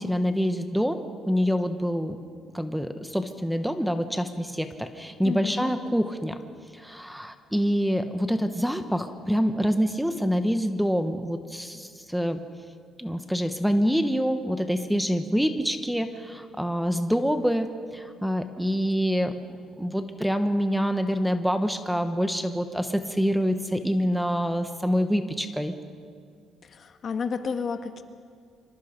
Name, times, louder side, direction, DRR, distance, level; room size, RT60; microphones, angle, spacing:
voice 1, 0.0-2.2 2.5-6.4 6.7-12.4 13.0-19.3 19.8-25.7, equal, ahead, 8 dB, 1.2 m, -26 dB
voice 2, 5.2-5.7 26.6-28.0, left 5 dB, 50° left, 7 dB, 1.5 m, -31 dB
25.5 x 25.0 x 5.2 m, 2.2 s
cardioid pair, 100°, 0 cm